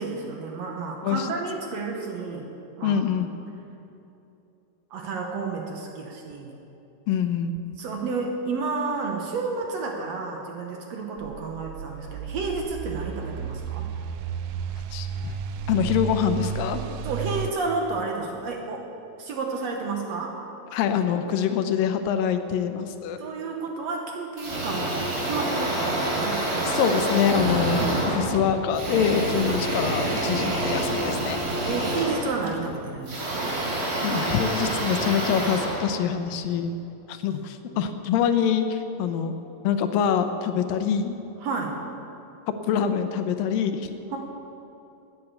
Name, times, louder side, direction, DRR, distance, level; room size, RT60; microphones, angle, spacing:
voice 1, 0.0-2.5 2.8-3.0 4.9-6.5 7.8-13.9 17.0-18.8 19.2-20.4 23.2-26.4 29.5-29.7 31.6-33.6 41.4-41.8 44.1-44.2, right 4 dB, 60° right, 1 dB, 2.0 m, -31 dB
voice 2, 2.8-3.3 7.1-7.5 14.9-15.3 15.7-16.8 20.7-23.2 26.6-31.4 34.0-36.7 37.1-39.4 39.6-41.2 42.7-43.9, left 8 dB, 85° left, 8 dB, 2.5 m, -25 dB
sound 1, 11.2-17.5, right 8 dB, 80° right, 1.9 m, -33 dB
sound 2, 24.4-36.6, right 1 dB, 40° right, 0.9 m, -27 dB
13.0 x 9.2 x 8.2 m, 2.8 s
omnidirectional pair, 3.9 m